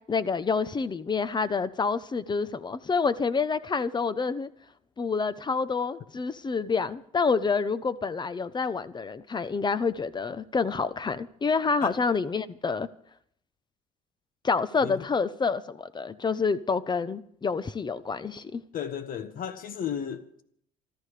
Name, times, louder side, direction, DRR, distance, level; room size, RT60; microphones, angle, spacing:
voice 1, 0.1-4.5 5.0-12.9 14.4-18.6, left 5 dB, 25° left, 0.8 m, -28 dB
voice 2, 18.7-20.4, left 8 dB, 55° left, 1.5 m, -34 dB
28.5 x 13.0 x 3.4 m
cardioid pair, 110°, 17 cm